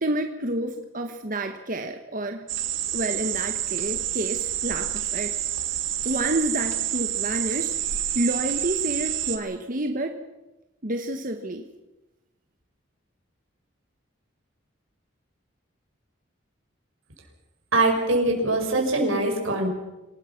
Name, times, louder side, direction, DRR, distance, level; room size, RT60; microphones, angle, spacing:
voice 1, 0.0-2.5 2.9-5.3 6.0-7.8 8.1-10.2 10.8-11.6, right 1 dB, 40° right, 5 dB, 1.3 m, -29 dB
sound 1, 2.5-9.4, right 11 dB, 70° right, 2.0 m, -28 dB
voice 2, 17.7-19.7, right 2 dB, 85° right, 2 dB, 5.7 m, -22 dB
26.5 x 19.0 x 5.9 m, 1.0 s
head